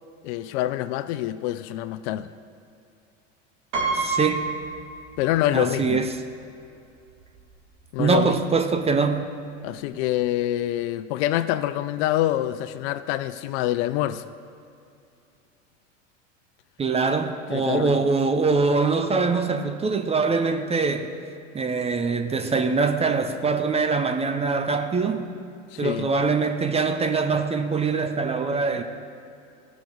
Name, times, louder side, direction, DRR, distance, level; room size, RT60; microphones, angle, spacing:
voice 1, 0.2-2.3 5.2-6.0 7.9-8.4 9.6-14.2 17.5-18.1 25.7-26.1, left 14 dB, 60° left, 14 dB, 0.5 m, -26 dB
Piano, 3.7-5.6 5.9-6.0 7.1-7.2 7.5-7.8, right 4 dB, 65° right, 2.3 m, -28 dB
voice 2, 3.9-4.5 5.5-6.1 8.0-9.2 16.8-21.1 21.5-25.3 25.8-28.8, right 4 dB, 15° right, 8 dB, 0.5 m, -23 dB
15.5 x 5.9 x 3.9 m, 2.5 s
hypercardioid pair, 105°, 38 cm